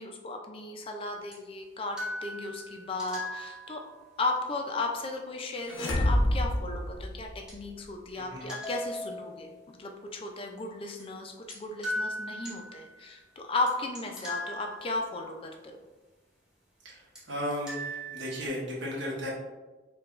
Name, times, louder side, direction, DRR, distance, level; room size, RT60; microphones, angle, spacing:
voice 1, 0.0-3.8 4.2-9.5 9.8-15.8, left 2 dB, 30° left, 3 dB, 0.3 m, -35 dB
sound 1, 1.3-1.4 2.0-4.1 5.7-5.8 7.5-7.6 8.5-9.6 11.0-11.1 11.5-11.6 11.8-13.0 13.7-13.8 14.0-15.2 17.2-17.3 17.5-18.5, left 1 dB, 5° right, 0.7 m, -38 dB
sound 2, 5.6-7.7, left 1 dB, 85° left, 0.7 m, -27 dB
voice 2, 8.1-8.5 16.8-19.3, equal, 65° right, -5 dB, 1.0 m, -35 dB
4.6 x 2.3 x 2.4 m, 1.2 s
head